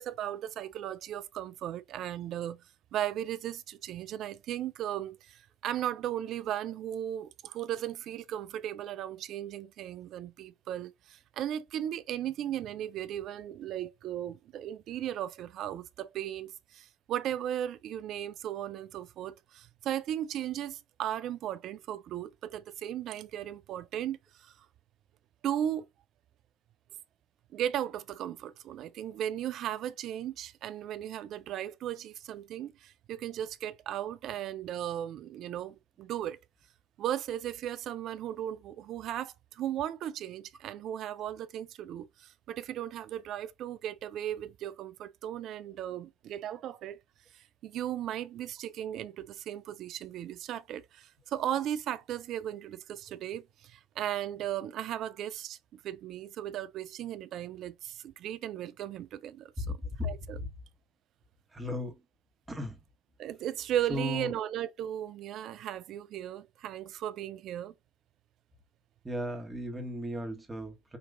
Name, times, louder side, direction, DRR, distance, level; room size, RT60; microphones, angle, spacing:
voice 1, 0.0-2.6 2.9-24.7 25.4-25.9 27.5-36.4 37.0-47.0 47.3-59.8 60.0-60.4 63.2-67.7, right 11 dB, 50° right, 0.3 m, -36 dB
voice 2, 59.6-60.5 61.5-62.0 62.5-62.8 63.9-64.3 69.0-71.0, left 1 dB, 15° right, 1.4 m, -36 dB
5.2 x 2.9 x 2.5 m
hypercardioid pair, 75°, 0 cm